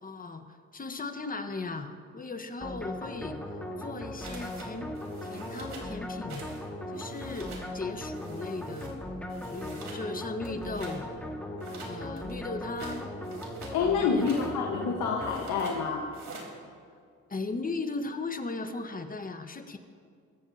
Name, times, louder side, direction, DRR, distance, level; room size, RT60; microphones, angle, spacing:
voice 1, 0.0-3.4 3.8-4.9 5.2-6.4 6.9-9.0 9.5-11.1 11.8-13.2 14.0-14.3 17.3-19.8, left 3 dB, 30° left, 6 dB, 1.4 m, -37 dB
sound 1, 2.6-15.9, left 1 dB, 5° left, 2.0 m, -38 dB
sound 2, 4.2-4.7 4.9-5.9 6.3-6.6 6.9-7.7 8.1-8.9 9.3-10.0 10.4-11.0 11.6-13.8 14.1-14.5 15.2-15.8 16.1-16.5, right 3 dB, 65° right, 4.2 m, -46 dB
voice 2, 13.7-16.1, left 5 dB, 85° left, 0 dB, 1.5 m, -28 dB
24.0 x 14.0 x 2.9 m, 2.2 s
cardioid pair, 90°, 30 cm